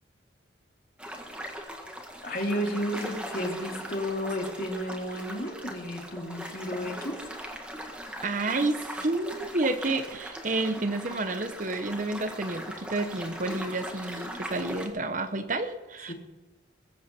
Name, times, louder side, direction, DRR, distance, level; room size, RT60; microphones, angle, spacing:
a log in a river, 1.0-14.9, equal, 5° right, 1.7 m, -40 dB
voice 1, 2.2-7.2 16.1-16.2, equal, 50° left, 1 dB, 2.6 m, -32 dB
voice 2, 8.2-16.1, right 2 dB, 40° right, 9 dB, 1.0 m, -30 dB
21.5 x 8.3 x 6.0 m, 1.2 s
head